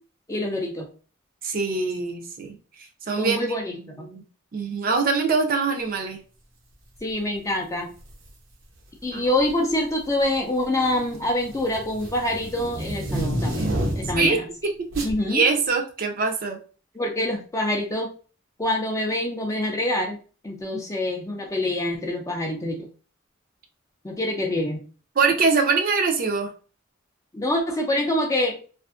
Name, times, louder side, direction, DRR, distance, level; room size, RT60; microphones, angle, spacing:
voice 1, 0.3-0.9 3.2-4.1 7.0-7.9 9.0-14.5 15.0-15.5 16.9-18.1 18.6-20.2 20.4-22.9 24.0-24.8 27.3-28.6, left 1 dB, 15° left, 1 dB, 0.4 m, -26 dB
voice 2, 1.4-2.6 3.1-4.2 4.5-6.2 9.1-9.2 14.1-14.4 15.0-16.6 25.2-26.5, right 4 dB, 45° right, 4 dB, 0.5 m, -23 dB
sound 1, 8.0-8.3 9.3-9.7 10.0-14.3 14.9-15.2, right 1 dB, 75° right, 0.7 m, -30 dB
2.5 x 2.4 x 2.4 m, 0.38 s
head